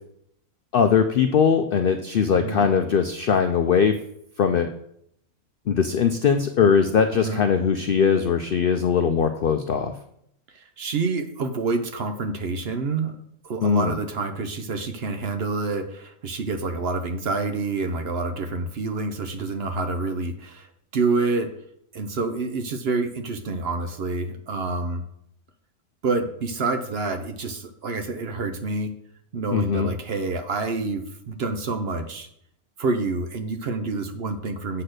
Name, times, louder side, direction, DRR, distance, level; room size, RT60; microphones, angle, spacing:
voice 1, 0.7-3.9 4.4-4.7 5.7-9.9 13.6-13.9 29.5-29.9, left 6 dB, 90° left, 7 dB, 0.4 m, -20 dB
voice 2, 2.3-2.7 7.1-7.4 10.5-13.1 13.4-21.5 21.9-25.0 26.0-28.9 29.3-32.3 32.8-34.8, right 3 dB, 55° right, 7 dB, 0.8 m, -27 dB
7.7 x 4.2 x 6.5 m, 0.72 s
omnidirectional pair, 1.6 m